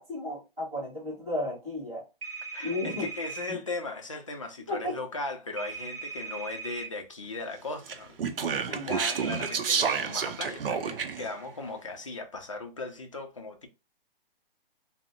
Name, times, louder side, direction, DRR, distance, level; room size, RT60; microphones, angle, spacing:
voice 1, 0.0-2.0 2.6-3.1 3.5-3.6 4.7-5.0 8.7-8.9, left 1 dB, 10° right, 1.0 m, -34 dB
sound 1, 2.2-3.6 5.6-6.9 8.9-9.6, right 5 dB, 35° right, 1.4 m, -39 dB
voice 2, 2.5-13.7, left 3 dB, 35° left, 0.4 m, -38 dB
Speech, 7.9-11.3, right 6 dB, 70° right, 0.5 m, -29 dB
2.5 x 2.0 x 3.6 m
hypercardioid pair, 175°, 29 cm